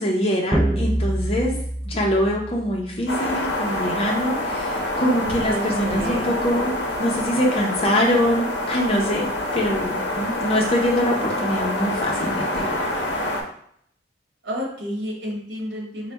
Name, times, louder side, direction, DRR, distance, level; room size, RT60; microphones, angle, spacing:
voice 1, 0.0-1.6 1.9-6.7 7.0-13.0, equal, 30° left, -1 dB, 0.7 m, -24 dB
sound 1, 0.5-3.1, right 1 dB, 5° right, 0.4 m, -25 dB
sound 2, 3.1-13.4, left 1 dB, 70° left, 0.7 m, -26 dB
voice 2, 5.4-6.3 14.4-16.1, equal, 65° right, -2 dB, 1.1 m, -30 dB
4.1 x 2.2 x 3.4 m, 0.66 s
head